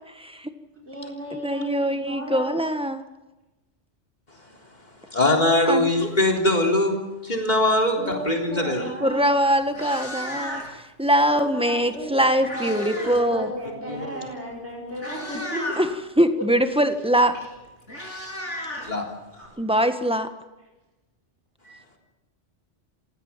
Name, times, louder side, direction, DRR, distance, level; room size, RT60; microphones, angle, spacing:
voice 1, 0.1-0.5 1.3-3.0 5.7-6.1 9.0-13.5 15.8-15.9 16.2-17.3 19.6-20.3, equal, 5° right, 8 dB, 1.5 m, -22 dB
voice 2, 0.9-2.6 8.0-9.3 11.3-15.6 17.4-17.5 19.3-19.5, equal, 65° right, -1 dB, 5.6 m, -34 dB
voice 3, 5.1-8.9 13.9-14.2 18.8-19.1 21.6-21.8, left 1 dB, 40° left, 1 dB, 3.9 m, -22 dB
Meow, 9.1-9.2 9.6-10.9 11.9-13.3 13.5-13.8 14.5-14.6 14.9-15.9 17.2-17.3 17.5-19.4, left 1 dB, 90° left, 7.5 m, -34 dB
28.0 x 16.5 x 7.5 m, 1.0 s
omnidirectional pair, 1.2 m